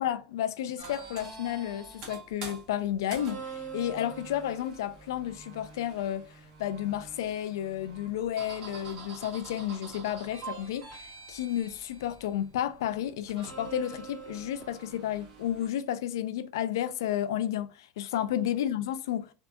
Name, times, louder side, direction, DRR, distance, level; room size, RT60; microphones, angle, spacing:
voice 1, 0.0-19.2, left 11 dB, 90° left, 0.4 m, -32 dB
sound 1, 0.8-15.7, right 5 dB, 35° right, 1.0 m, -45 dB
2.8 x 2.6 x 2.3 m
supercardioid pair, 165°, 2 cm